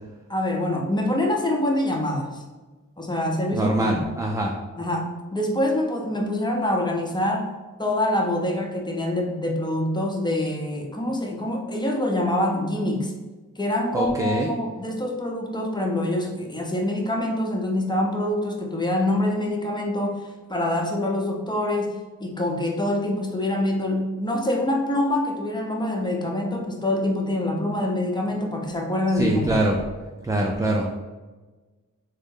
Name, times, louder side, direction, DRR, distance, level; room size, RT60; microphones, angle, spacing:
voice 1, 0.3-2.4 3.0-4.0 4.8-7.5 7.8-13.1 13.6-21.9 22.2-29.5, left 1 dB, 15° left, 0 dB, 0.7 m, -25 dB
voice 2, 3.5-4.5 13.9-14.5 29.1-29.8 30.2-31.0, right 1 dB, 10° right, 0 dB, 0.3 m, -23 dB
3.6 x 2.1 x 3.7 m, 1.3 s
cardioid pair, 60°, 33 cm